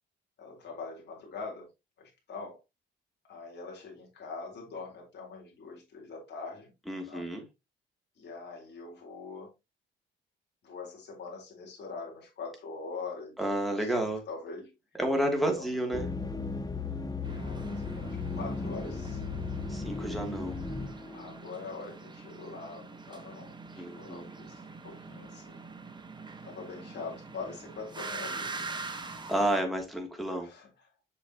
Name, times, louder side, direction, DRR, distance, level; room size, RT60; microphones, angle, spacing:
voice 1, 0.4-1.7 2.0-2.6 3.3-6.7 7.1-7.3 8.2-9.5 10.6-13.4 13.8-14.7 15.5-15.8 17.3-19.4 21.1-25.6 26.4-28.8 30.3-30.7, left 4 dB, 60° left, 4.2 m, -43 dB
voice 2, 6.9-7.4 13.4-14.2 15.0-16.1 19.7-20.6 23.7-24.4 29.3-30.5, right 1 dB, ahead, 2.9 m, -30 dB
sound 1, 15.9-21.4, left 3 dB, 20° left, 0.9 m, -36 dB
sound 2, 17.2-29.6, right 4 dB, 20° right, 1.5 m, -44 dB
7.3 x 6.6 x 3.0 m
cardioid pair, 90°, 20 cm